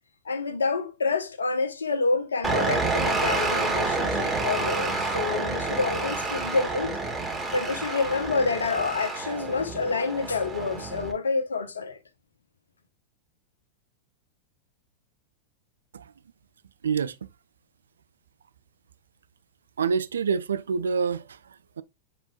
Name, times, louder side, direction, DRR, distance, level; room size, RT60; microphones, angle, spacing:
voice 1, 0.2-7.0 7.5-12.0, left 4 dB, 70° left, 1.0 m, -28 dB
sound 1, 2.4-11.1, right 3 dB, 5° right, 2.7 m, -29 dB
voice 2, 16.8-17.1 19.8-21.2 21.8-21.9, right 6 dB, 70° right, 0.5 m, -26 dB
9.0 x 4.4 x 2.4 m
figure-of-eight pair, 90°, 0 cm